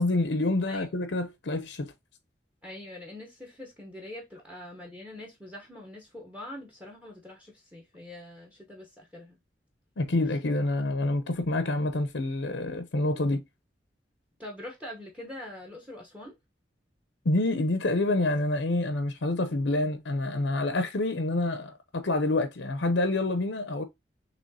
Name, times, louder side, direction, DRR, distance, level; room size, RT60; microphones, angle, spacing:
voice 1, 0.0-1.9 10.0-13.4 17.2-23.8, left 2 dB, 80° left, 0.7 m, -27 dB
voice 2, 2.6-9.4 14.4-16.4, left 1 dB, 10° right, 1.0 m, -44 dB
6.2 x 3.1 x 2.8 m
head